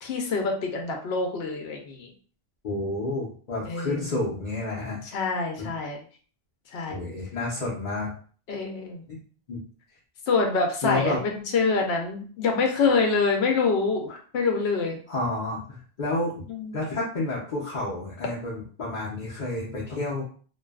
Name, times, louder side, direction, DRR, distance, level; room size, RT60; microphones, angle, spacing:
voice 1, 0.0-2.1 3.7-4.0 5.1-6.0 6.7-7.0 8.5-9.0 10.3-15.0 16.5-16.8, left 4 dB, 80° left, 2 dB, 0.9 m, -26 dB
voice 2, 2.6-5.0 5.6-5.7 6.9-8.1 9.1-9.2 9.5-9.6 10.8-11.2 15.1-16.4 16.7-20.2, left 2 dB, 50° left, -6 dB, 0.7 m, -30 dB
2.6 x 2.3 x 2.2 m, 0.43 s
omnidirectional pair, 1.1 m